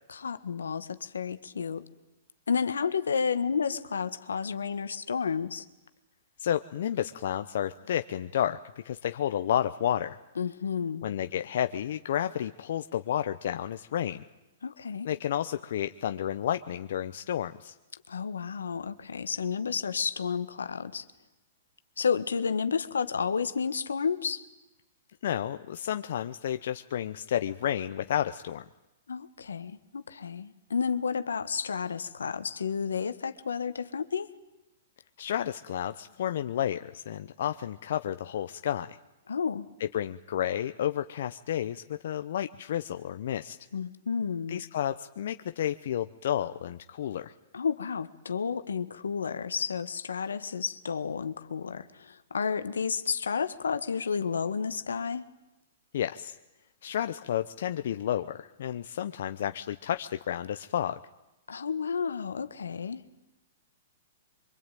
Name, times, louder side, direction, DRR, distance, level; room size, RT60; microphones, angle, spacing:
voice 1, 0.1-1.8 2.5-5.6 10.4-11.1 14.6-15.1 18.1-21.0 22.0-24.4 29.1-34.3 39.3-39.7 43.7-44.6 47.5-55.3 61.5-63.0, left 6 dB, 90° left, 11 dB, 1.6 m, -31 dB
voice 2, 6.4-10.2 11.0-14.2 15.0-17.7 25.2-28.6 35.2-39.0 39.8-43.6 44.5-47.3 55.9-56.4 56.8-61.0, left 10 dB, 65° left, 9 dB, 0.9 m, -31 dB
24.5 x 24.0 x 9.2 m, 0.98 s
hypercardioid pair, 125°, 0 cm